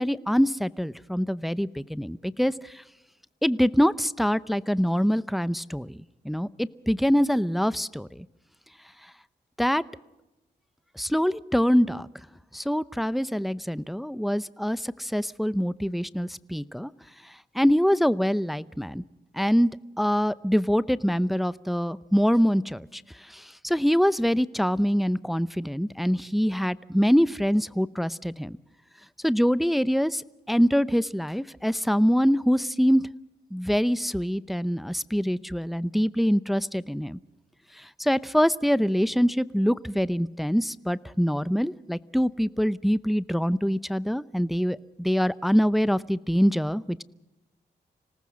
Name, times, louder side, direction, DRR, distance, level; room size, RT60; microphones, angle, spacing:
voice 1, 0.0-2.5 3.4-6.0 6.2-8.3 9.6-9.8 11.0-12.1 12.5-16.9 17.5-19.0 19.3-19.7 20.0-23.0 23.3-28.6 29.2-33.0 33.5-37.2 38.0-47.0, equal, ahead, 17 dB, 0.7 m, -24 dB
26.0 x 18.5 x 6.3 m, 0.97 s
cardioid pair, 65°, 19 cm